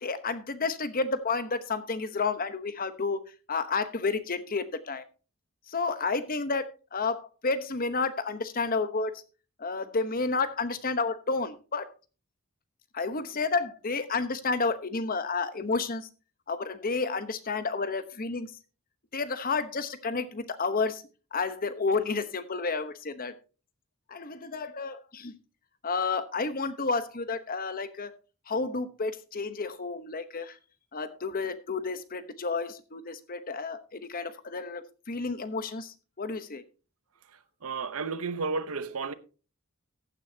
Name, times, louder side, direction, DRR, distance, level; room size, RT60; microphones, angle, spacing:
voice 1, 0.0-5.0 5.7-9.1 9.6-11.9 12.9-16.1 16.5-18.5 19.1-21.0 21.3-23.3 24.1-25.4 25.8-28.1 28.5-30.5 30.9-36.6, left 4 dB, 40° left, 1.0 m, -31 dB
voice 2, 37.3-39.1, right 4 dB, 85° right, 0.8 m, -33 dB
14.5 x 9.8 x 2.8 m
head